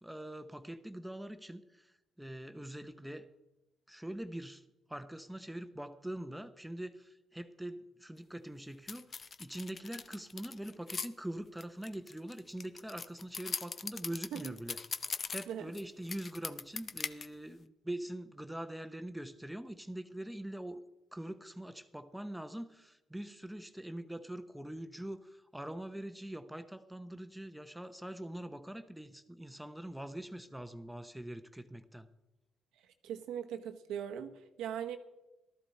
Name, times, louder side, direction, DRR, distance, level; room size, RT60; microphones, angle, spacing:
voice 1, 0.0-3.3 3.9-20.8 21.1-32.1, right 1 dB, 5° right, 9 dB, 0.9 m, -43 dB
sound 1, 8.9-11.1 11.6-15.8 16.1-17.3, left 5 dB, 40° left, 0.7 m, -40 dB
voice 2, 32.8-34.3 34.6-35.0, right 9 dB, 90° right, 7 dB, 1.1 m, -40 dB
15.0 x 13.0 x 4.3 m, 0.97 s
cardioid pair, 90°, 0 cm